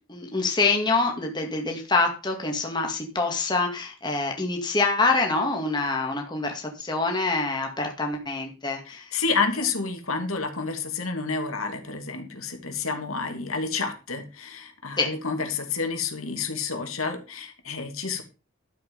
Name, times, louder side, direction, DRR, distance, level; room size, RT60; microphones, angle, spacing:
voice 1, 0.1-9.0 15.0-15.1, left 3 dB, 20° left, 2 dB, 2.2 m, -25 dB
voice 2, 8.9-18.2, left 4 dB, 80° left, 5 dB, 2.6 m, -29 dB
12.0 x 7.7 x 5.5 m, 0.32 s
head